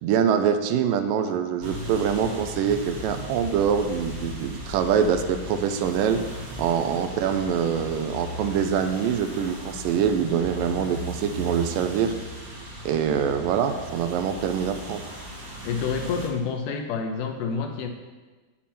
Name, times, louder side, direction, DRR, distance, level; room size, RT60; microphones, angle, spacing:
voice 1, 0.0-6.2 6.6-12.1 12.9-15.0, right 7 dB, 80° right, 8 dB, 2.2 m, -24 dB
sound 1, 1.6-16.3, equal, 60° right, 0.9 m, -37 dB
voice 2, 15.7-17.9, left 5 dB, 75° left, 4 dB, 2.1 m, -28 dB
9.0 x 7.1 x 4.3 m, 1.3 s
omnidirectional pair, 4.0 m